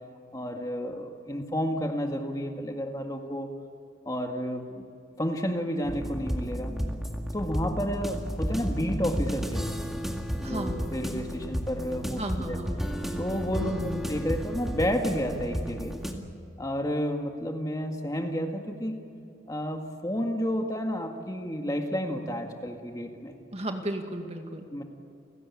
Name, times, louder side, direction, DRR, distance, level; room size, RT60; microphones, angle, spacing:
voice 1, 0.3-3.5 4.1-4.8 5.2-6.7 7.3-9.7 10.4-12.9 13.2-16.0 16.6-19.0 19.5-23.4 24.7-24.8, equal, 20° left, 3 dB, 1.9 m, -31 dB
sound 1, 5.8-16.1, equal, ahead, 2.0 m, -32 dB
voice 2, 10.4-10.8 12.2-12.7 13.6-14.0 23.5-24.6, right 1 dB, 35° right, 4 dB, 2.2 m, -34 dB
30.0 x 17.0 x 8.6 m, 2.5 s
head